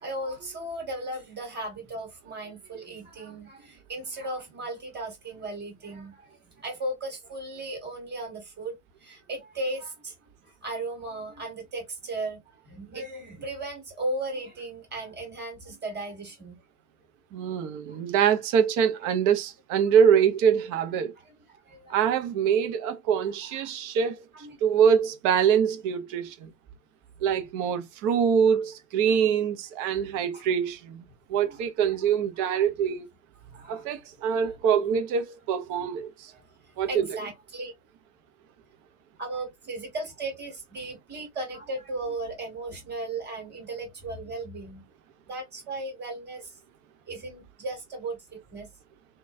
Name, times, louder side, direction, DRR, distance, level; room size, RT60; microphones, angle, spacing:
voice 1, 0.0-10.1 10.4-16.6 17.9-18.0 21.2-22.0 23.6-23.7 24.3-24.6 29.0-29.2 29.9-30.1 30.3-30.5 31.4-32.0 33.4-33.9 34.4-34.5 35.8-35.9 36.3-36.4 36.9-37.7 39.2-44.9 45.3-46.6 47.1-48.7, right 2 dB, 20° right, 1.8 m, -36 dB
voice 2, 17.3-21.1 21.9-24.2 24.6-26.5 27.2-31.0 31.3-33.1 33.7-36.3 36.8-37.2, right 7 dB, 40° right, 0.8 m, -24 dB
3.0 x 2.3 x 2.5 m
hypercardioid pair, 95°, 48 cm